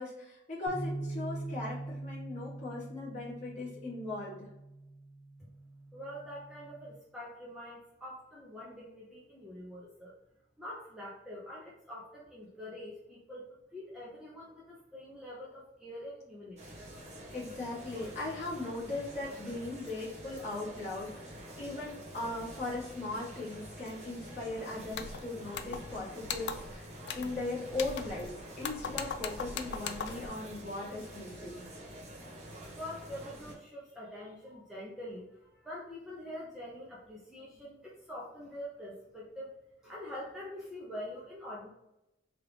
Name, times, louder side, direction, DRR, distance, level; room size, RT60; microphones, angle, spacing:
voice 1, 0.0-4.5 17.3-31.6, left 2 dB, 40° left, -7 dB, 1.5 m, -39 dB
sound 1, 0.7-6.9, right 2 dB, 25° left, 1.5 m, -43 dB
voice 2, 5.9-10.1 10.6-16.8 32.7-39.5 39.8-41.7, left 1 dB, 5° right, -7 dB, 0.5 m, -45 dB
sound 2, 16.6-33.5, right 1 dB, 35° right, 1.0 m, -47 dB
sound 3, 24.9-25.2 25.5-26.0 26.2-26.7 27.1-27.4 27.7-28.3 28.6-30.3, left 6 dB, 65° left, 0.3 m, -39 dB
3.3 x 2.4 x 3.2 m, 0.90 s
head